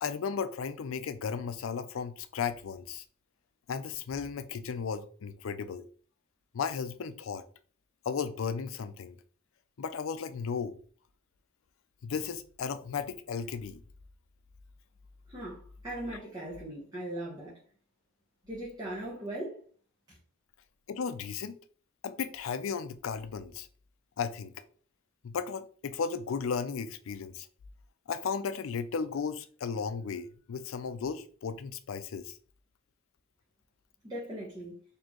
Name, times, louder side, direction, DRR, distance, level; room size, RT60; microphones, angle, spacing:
voice 1, 0.0-3.0 3.7-5.8 6.5-7.4 8.1-9.2 9.8-10.8 12.0-13.8 20.9-21.6 22.0-23.7 24.2-24.6 25.2-27.5 28.1-32.4, left 6 dB, 85° left, 0.4 m, -35 dB
voice 2, 15.3-17.6 18.4-19.6 20.1-20.2 34.0-34.8, right 1 dB, 20° right, 0.9 m, -39 dB
4.3 x 2.7 x 2.9 m
head